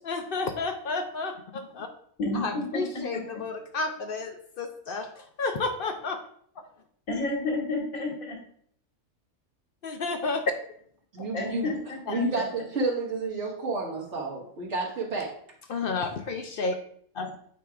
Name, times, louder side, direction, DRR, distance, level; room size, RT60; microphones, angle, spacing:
voice 1, 0.0-1.9 2.3-6.2 9.8-10.4 11.2-11.3 15.7-16.8 17.1-17.3, left 3 dB, 60° left, 6 dB, 0.6 m, -31 dB
voice 2, 2.2-3.5 7.1-8.4 11.3-12.2 13.3-13.4, left 2 dB, 85° left, -1 dB, 2.1 m, -31 dB
voice 3, 11.1-11.7 12.1-15.3, right 2 dB, 55° right, -3 dB, 1.8 m, -30 dB
8.8 x 4.8 x 2.4 m, 0.64 s
omnidirectional pair, 1.4 m